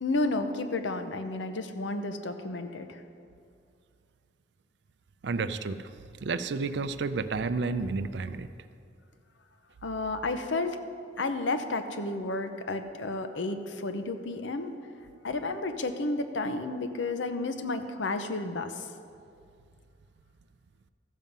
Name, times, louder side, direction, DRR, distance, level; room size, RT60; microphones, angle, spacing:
voice 1, 0.0-3.0 9.8-10.8 11.2-14.7 15.2-18.9, left 2 dB, 80° left, 8 dB, 0.8 m, -31 dB
voice 2, 5.2-5.9 6.2-8.5, right 4 dB, 65° right, 12 dB, 0.4 m, -31 dB
14.0 x 7.3 x 5.4 m, 2.4 s
head